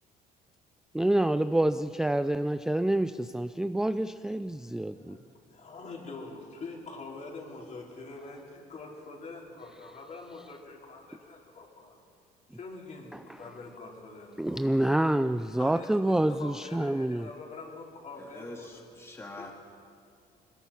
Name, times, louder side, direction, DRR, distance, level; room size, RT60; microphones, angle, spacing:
voice 1, 0.9-5.2 13.1-13.2 14.4-17.3, right 1 dB, 5° right, 11 dB, 0.4 m, -27 dB
voice 2, 5.5-12.0 12.5-15.0 15.6-18.8 19.4-19.5, left 3 dB, 45° left, -2 dB, 4.7 m, -45 dB
voice 3, 18.2-19.5, left 2 dB, 15° left, 1 dB, 2.1 m, -44 dB
21.5 x 21.0 x 5.9 m, 2.3 s
cardioid pair, 110°, 17 cm